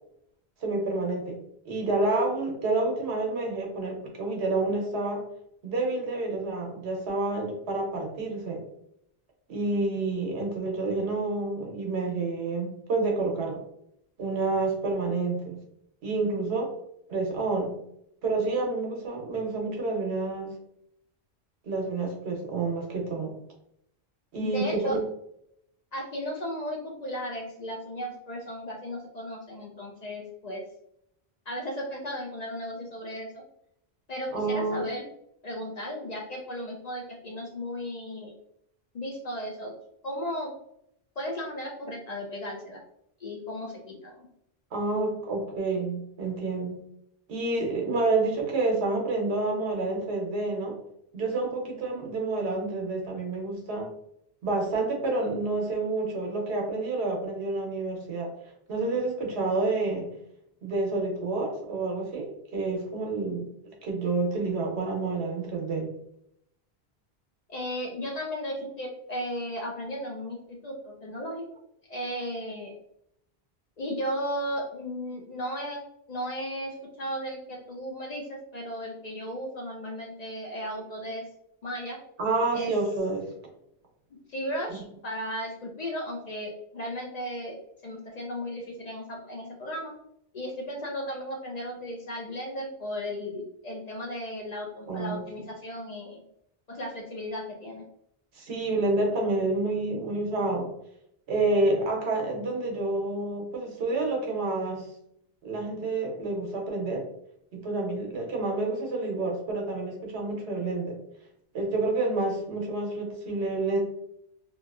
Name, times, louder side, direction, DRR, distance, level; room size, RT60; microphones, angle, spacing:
voice 1, 0.6-1.4 1.6-5.2 5.6-8.6 9.5-13.6 14.2-15.6 16.0-16.7 17.1-17.8 18.2-20.5 21.6-23.4 24.3-25.0 34.3-34.9 44.7-46.8 47.3-50.8 51.1-53.9 54.4-58.3 58.7-60.1 60.6-66.0 82.2-83.3 94.9-95.2 98.3-100.7 101.3-104.9 105.4-107.0 107.5-110.9 111.5-113.8, right 3 dB, 85° right, 1 dB, 1.0 m, -29 dB
voice 2, 24.4-25.0 25.9-30.6 31.5-33.4 34.1-35.0 35.4-38.3 38.9-39.7 40.0-40.5 41.2-42.8 43.2-44.3 67.5-71.4 71.9-72.7 73.8-75.8 76.1-81.2 81.6-82.0 82.5-82.7 84.3-87.6 87.8-89.9 90.3-96.2 96.7-97.8, equal, 55° left, 0 dB, 0.5 m, -35 dB
2.8 x 2.3 x 2.3 m, 0.75 s
omnidirectional pair, 1.1 m